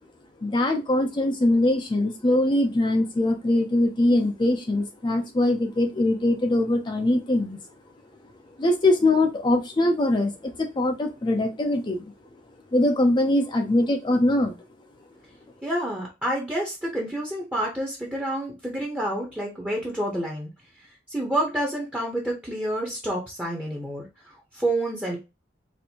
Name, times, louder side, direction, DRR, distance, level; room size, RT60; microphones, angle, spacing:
voice 1, 0.4-7.6 8.6-12.1 12.7-14.5, left 1 dB, 25° left, 4 dB, 0.4 m, -22 dB
voice 2, 15.6-20.5 21.1-25.2, right 1 dB, 10° right, -1 dB, 0.7 m, -28 dB
4.3 x 2.6 x 2.8 m, 0.26 s
head